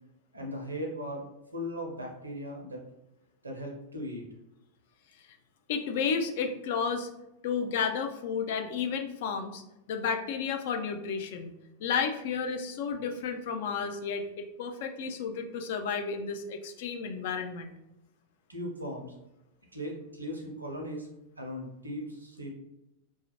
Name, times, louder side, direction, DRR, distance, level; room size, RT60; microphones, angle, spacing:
voice 1, 0.3-1.2 1.5-2.8 3.4-4.2 18.5-19.1 19.7-21.1 21.4-22.5, equal, 80° right, 1 dB, 0.5 m, -38 dB
voice 2, 5.7-7.1 7.4-9.6 9.9-11.5 11.8-17.7, left 6 dB, 55° left, 5 dB, 0.3 m, -32 dB
2.3 x 2.1 x 2.8 m, 0.89 s
figure-of-eight pair, 90°, 0 cm